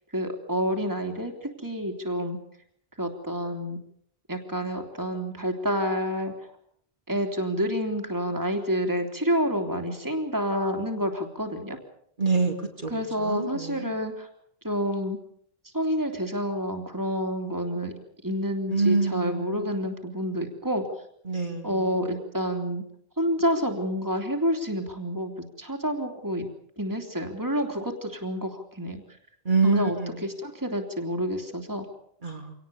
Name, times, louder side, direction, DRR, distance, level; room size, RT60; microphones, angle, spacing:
voice 1, 0.1-2.4 3.0-3.8 4.3-6.3 7.1-11.8 12.9-14.3 14.6-15.2 15.7-17.9 18.2-20.8 21.6-22.8 23.2-26.5 26.8-29.0 29.6-31.9, equal, 20° right, 3 dB, 3.2 m, -28 dB
voice 2, 12.2-12.5 12.8-13.9 18.7-19.7 21.3-21.7 29.5-30.1 32.2-32.5, right 4 dB, 50° right, 2 dB, 2.9 m, -26 dB
26.0 x 18.5 x 7.1 m, 0.67 s
omnidirectional pair, 1.0 m